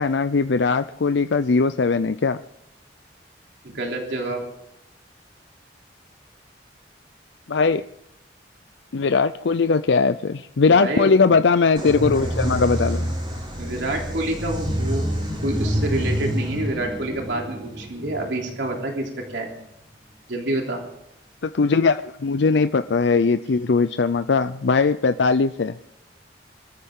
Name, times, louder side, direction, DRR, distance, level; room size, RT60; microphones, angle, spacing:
voice 1, 0.0-2.4 7.5-7.8 8.9-13.2 21.4-25.8, left 4 dB, 75° left, 0.5 m, -20 dB
voice 2, 3.6-4.4 10.7-11.1 13.6-15.0 15.4-19.5 20.3-20.8, right 1 dB, 80° right, 3.3 m, -27 dB
sound 1, 11.8-19.3, equal, 25° right, 6.2 m, -27 dB
25.0 x 14.0 x 3.7 m
head